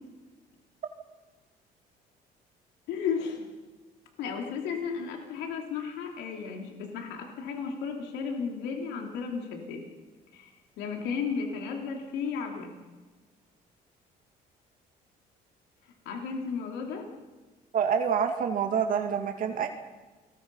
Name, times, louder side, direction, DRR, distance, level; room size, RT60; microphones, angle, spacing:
voice 1, 2.9-3.5 4.2-9.8 10.3-12.7 16.1-17.0, left 6 dB, 90° left, 2 dB, 3.6 m, -34 dB
voice 2, 17.7-19.7, right 7 dB, 55° right, 4 dB, 2.4 m, -27 dB
30.0 x 21.0 x 5.7 m, 1.3 s
cardioid pair, 110°, 17 cm